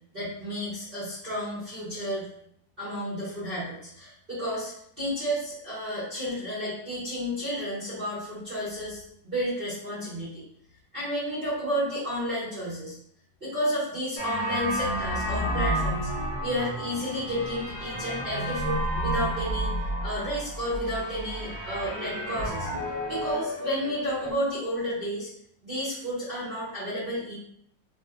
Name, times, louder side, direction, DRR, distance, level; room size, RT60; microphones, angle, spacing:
voice 1, 0.1-2.3 2.8-10.4 10.9-12.9 13.4-16.1 16.4-22.7 23.1-25.3 25.6-27.3, equal, 35° right, -11 dB, 1.3 m, -31 dB
sound 1, 14.2-24.3, equal, 20° left, 1.3 m, -31 dB
3.1 x 2.5 x 2.3 m, 0.68 s
omnidirectional pair, 2.0 m